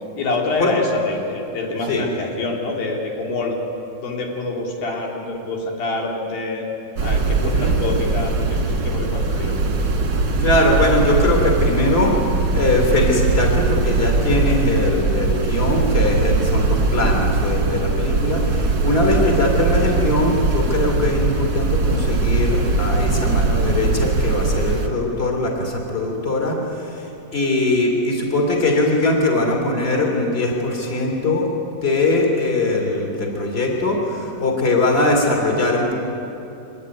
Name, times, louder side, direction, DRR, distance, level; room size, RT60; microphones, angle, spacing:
voice 1, 0.2-3.6 4.0-6.6 7.0-9.6, left 2 dB, 80° left, 0 dB, 5.1 m, -26 dB
sound 1, 7.0-24.9, right 3 dB, 35° right, 2.3 m, -20 dB
voice 2, 7.4-7.7 10.4-31.5 31.8-35.9, left 2 dB, 15° left, 1 dB, 3.7 m, -21 dB
25.0 x 20.0 x 9.5 m, 2.8 s
omnidirectional pair, 4.1 m